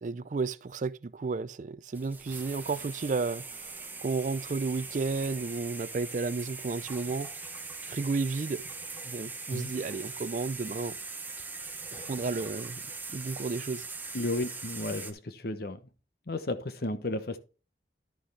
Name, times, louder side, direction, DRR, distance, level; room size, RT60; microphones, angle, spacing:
voice 1, 0.0-7.3 7.9-8.6 9.0-11.0 11.9-12.8 13.1-13.8, right 4 dB, 45° right, 0.4 m, -32 dB
sound 1, 1.9-15.1, right 4 dB, 10° right, 0.8 m, -41 dB
voice 2, 14.1-15.8 16.3-17.4, left 2 dB, 55° left, 0.9 m, -33 dB
11.0 x 6.3 x 3.3 m
head